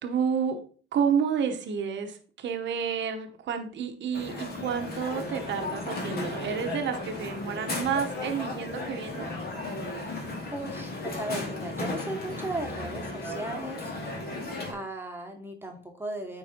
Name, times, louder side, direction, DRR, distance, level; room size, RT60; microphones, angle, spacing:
voice 1, 0.0-0.6 0.9-9.3, right 7 dB, 65° right, 7 dB, 0.9 m, -30 dB
Crowd, 4.1-14.7, left 2 dB, 50° left, 2.1 m, -35 dB
voice 2, 10.5-13.9 14.4-16.4, right 2 dB, 10° right, 2 dB, 1.3 m, -37 dB
9.2 x 4.0 x 2.8 m, 0.43 s
cardioid pair, 90°, 20 cm